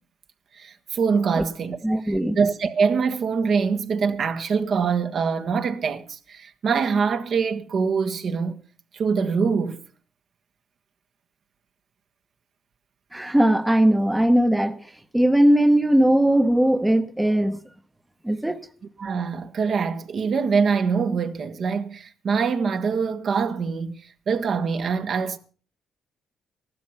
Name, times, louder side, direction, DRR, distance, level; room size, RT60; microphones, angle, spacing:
voice 1, 0.6-1.8 2.0-8.5 8.9-9.8 19.0-23.9 24.3-25.4, right 5 dB, 55° right, 1.4 m, -24 dB
voice 2, 1.8-2.4 13.1-14.8 15.1-17.6 18.2-18.6, right 1 dB, 10° right, 1.0 m, -19 dB
14.0 x 12.5 x 5.7 m
cardioid pair, 90°, 0 cm